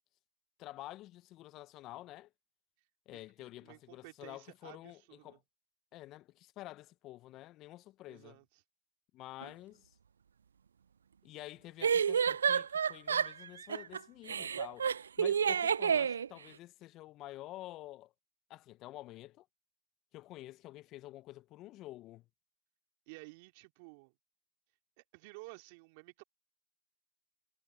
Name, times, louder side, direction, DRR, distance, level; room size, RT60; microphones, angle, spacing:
voice 1, 0.6-2.3 3.1-5.4 5.9-8.4 9.1-9.9 11.2-14.9 15.2-18.1 18.5-19.5 20.1-22.2, left 16 dB, 30° left, 1.0 m, -49 dB
voice 2, 3.6-5.4 8.1-8.4 23.1-24.1 25.0-26.2, right 29 dB, 40° right, 3.1 m, -53 dB
sound 1, 9.4-9.5 11.8-14.0 14.3-16.3, right 7 dB, 70° right, 0.3 m, -30 dB
hypercardioid pair, 125°, 0 cm